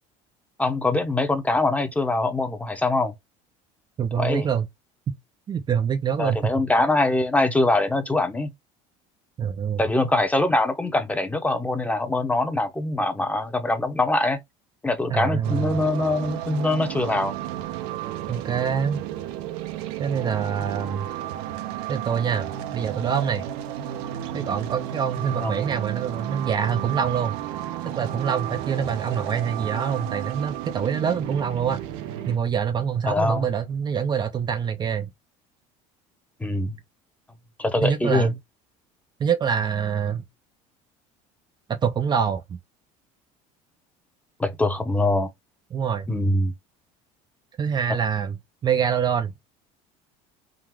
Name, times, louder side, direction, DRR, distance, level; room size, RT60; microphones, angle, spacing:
voice 1, 0.6-3.1 4.2-4.5 6.2-8.5 9.8-14.4 14.8-17.3 25.4-25.5 33.1-33.5 36.4-36.8 37.6-38.3 44.4-45.3 46.1-46.5, left 2 dB, 10° left, 0.9 m, -23 dB
voice 2, 4.0-4.7 5.5-6.5 9.4-9.8 15.1-15.7 18.3-19.0 20.0-21.1 21.9-22.5 22.7-23.5 24.3-27.4 28.0-31.8 32.3-35.1 37.8-38.3 39.2-40.2 41.7-42.4 45.7-46.1 47.6-48.4 48.6-49.3, right 7 dB, 30° right, 0.5 m, -25 dB
sound 1, 15.4-32.4, right 11 dB, 80° right, 0.8 m, -33 dB
3.9 x 2.4 x 4.5 m
cardioid pair, 120°, 15 cm